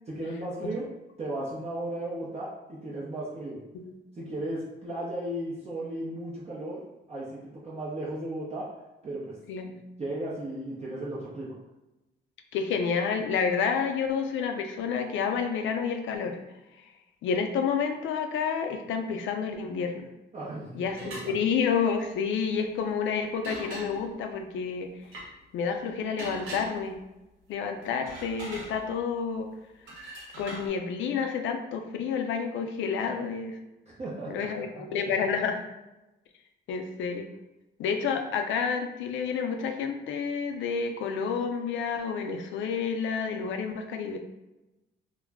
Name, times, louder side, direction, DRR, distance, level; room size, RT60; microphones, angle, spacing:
voice 1, 0.1-0.9 1.2-3.6 4.2-8.7 9.0-9.4 10.0-11.6 20.3-21.3 33.9-35.1, right 1 dB, 35° right, -7 dB, 0.6 m, -35 dB
voice 2, 9.5-9.8 12.5-16.4 17.2-20.1 20.7-21.0 21.3-24.9 25.5-27.0 27.5-29.5 30.4-33.6 34.3-35.6 36.7-37.3 37.8-44.2, left 6 dB, 75° left, 5 dB, 0.4 m, -29 dB
sound 1, 20.9-21.3 23.4-24.2 25.0-25.3 26.2-27.1 27.8-29.2 29.9-30.7, right 1 dB, 75° right, 0.8 m, -41 dB
2.3 x 2.0 x 3.3 m, 1.0 s
cardioid pair, 90°, 20 cm